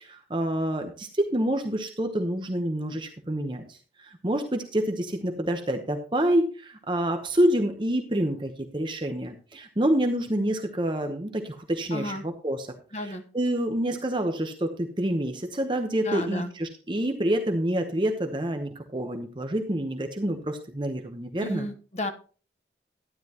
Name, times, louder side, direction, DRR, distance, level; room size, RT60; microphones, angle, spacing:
voice 1, 0.0-12.7 12.9-21.7, right 1 dB, 25° right, 5 dB, 0.9 m, -27 dB
voice 2, 11.9-12.2 12.9-13.2 16.0-16.5 21.4-22.1, left 1 dB, 40° left, 7 dB, 1.0 m, -32 dB
12.0 x 10.0 x 2.9 m, 0.37 s
head